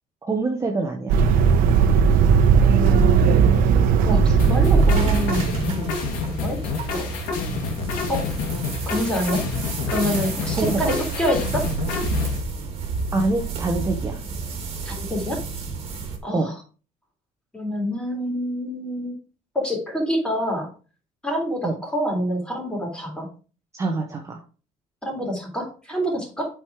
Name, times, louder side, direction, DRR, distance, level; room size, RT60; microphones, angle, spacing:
voice 1, 0.2-1.2 10.5-11.1 13.1-14.2 16.3-16.5 21.6-21.7 23.7-24.4, right 3 dB, 20° right, 2 dB, 1.1 m, -25 dB
sound 1, 1.1-5.7, right 6 dB, 80° right, 0.9 m, -17 dB
voice 2, 2.6-3.7 4.1-5.9 6.3-7.1 8.1-8.3 8.9-9.5 9.9-11.7 14.8-15.4 16.2-16.5 17.5-19.1 19.5-20.7 21.2-23.3 25.0-26.5, equal, 5° left, -1 dB, 3.6 m, -27 dB
sound 2, 4.4-12.4, left 5 dB, 80° left, 2.4 m, -29 dB
sound 3, 4.9-16.2, right 4 dB, 45° right, 2.4 m, -31 dB
8.2 x 4.9 x 4.7 m, 0.37 s
cardioid pair, 135°, 15 cm